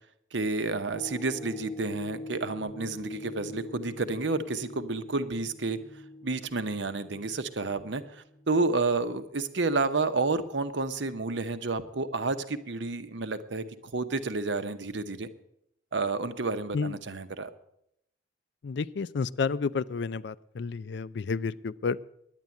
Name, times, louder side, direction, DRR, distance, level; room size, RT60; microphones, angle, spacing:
voice 1, 0.3-5.8 6.2-15.3 15.9-17.5, right 3 dB, 70° right, 11 dB, 0.9 m, -30 dB
sound 1, 0.9-9.3 9.8-9.9, left 1 dB, 10° left, 0.9 m, -44 dB
voice 2, 18.6-22.1, left 5 dB, 60° left, 18 dB, 0.4 m, -31 dB
10.5 x 9.2 x 8.4 m, 0.77 s
head